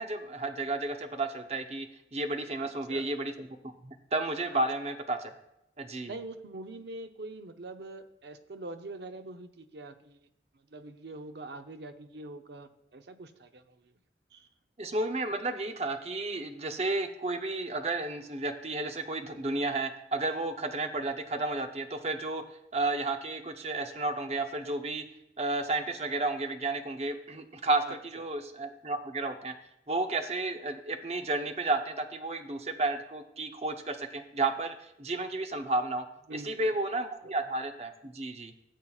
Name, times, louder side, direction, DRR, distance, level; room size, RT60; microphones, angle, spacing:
voice 1, 0.0-3.5 3.8-5.3 5.8-6.1 14.8-22.4 22.7-25.0 25.4-29.5 29.9-36.0 36.3-38.5, right 2 dB, 35° right, 6 dB, 0.7 m, -32 dB
voice 2, 2.6-3.1 6.0-10.3 10.7-13.9 14.3-14.5 27.9-28.0 36.3-36.6 37.2-37.3, right 2 dB, 75° right, 8 dB, 0.7 m, -44 dB
14.5 x 7.3 x 2.4 m, 0.83 s
head